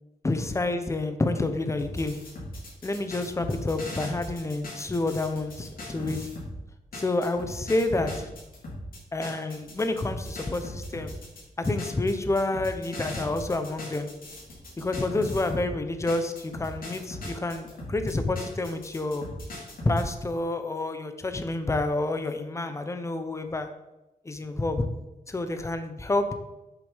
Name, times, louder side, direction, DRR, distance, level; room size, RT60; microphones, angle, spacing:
voice 1, 0.2-2.2 2.8-6.3 7.0-8.3 9.1-11.1 11.6-14.1 14.8-19.3 19.8-23.7 24.2-24.8 25.3-26.3, left 2 dB, 20° left, 8 dB, 0.9 m, -28 dB
sound 1, 1.8-6.6 6.9-15.7 16.1-20.0, left 1 dB, 70° left, 4.0 m, -39 dB
8.3 x 7.1 x 7.2 m, 0.99 s
wide cardioid pair, 160°, 15 cm